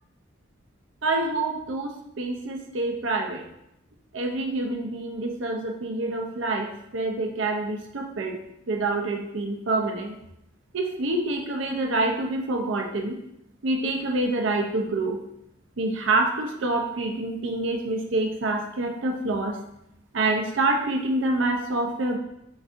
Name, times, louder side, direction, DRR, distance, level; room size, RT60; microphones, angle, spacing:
voice 1, 1.0-3.4 4.1-8.4 8.7-10.2 10.7-13.2 13.6-15.2 15.8-19.6 20.1-22.2, right 2 dB, 70° right, 3 dB, 0.6 m, -27 dB
6.0 x 2.6 x 2.5 m, 0.80 s
head